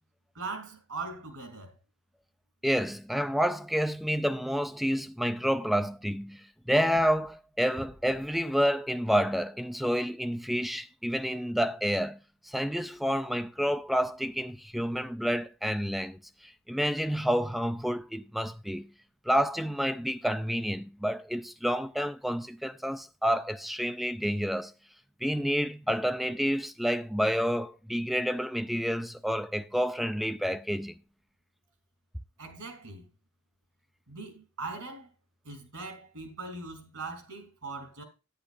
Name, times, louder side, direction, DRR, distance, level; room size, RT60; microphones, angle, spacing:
voice 1, 0.3-1.8 32.4-33.1 34.1-35.1 35.4-38.0, right 3 dB, 75° right, 2.7 m, -40 dB
voice 2, 2.6-12.2 12.4-18.9 19.3-24.7 25.2-30.9, equal, ahead, 0.3 m, -29 dB
10.5 x 9.5 x 2.5 m
head